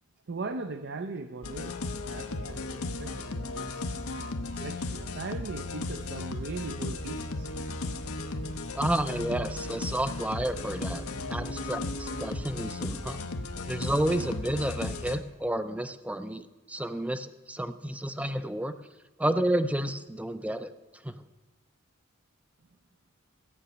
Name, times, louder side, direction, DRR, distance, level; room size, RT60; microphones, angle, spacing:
voice 1, 0.3-1.8 2.1-4.0 4.6-7.5, right 3 dB, 55° right, 8 dB, 0.6 m, -39 dB
sound 1, 1.4-15.2, left 2 dB, 85° left, 0.9 m, -35 dB
voice 2, 8.7-11.0 11.3-13.2 13.7-16.4 16.7-18.7 19.2-20.7 21.0-21.1, right 1 dB, 5° right, 11 dB, 0.5 m, -30 dB
14.0 x 5.9 x 9.0 m, 1.2 s
head